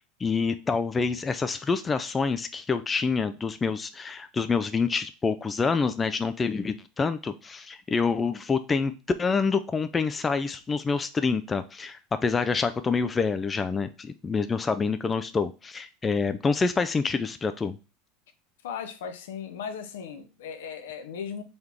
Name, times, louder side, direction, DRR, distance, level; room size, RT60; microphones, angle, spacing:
voice 1, 0.2-8.9 9.2-17.8, left 5 dB, 20° left, 10 dB, 0.3 m, -27 dB
voice 2, 18.6-21.4, left 7 dB, 75° left, 8 dB, 0.6 m, -37 dB
3.9 x 3.0 x 3.4 m, 0.31 s
hypercardioid pair, 85°, 0 cm